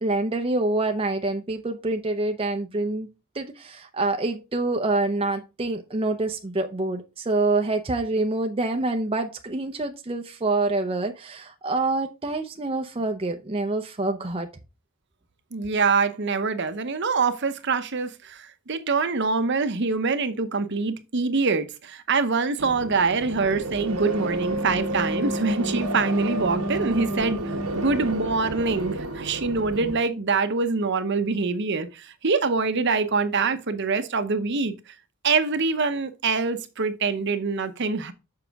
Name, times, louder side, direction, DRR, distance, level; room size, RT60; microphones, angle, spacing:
voice 1, 0.0-3.1 3.3-14.5, right 2 dB, 25° right, 0.6 m, -26 dB
voice 2, 15.5-27.4 27.7-34.7 35.2-38.1, right 4 dB, 55° right, 0.8 m, -24 dB
sound 1, 22.6-30.0, right 1 dB, 90° right, 1.2 m, -30 dB
7.1 x 5.7 x 3.5 m
head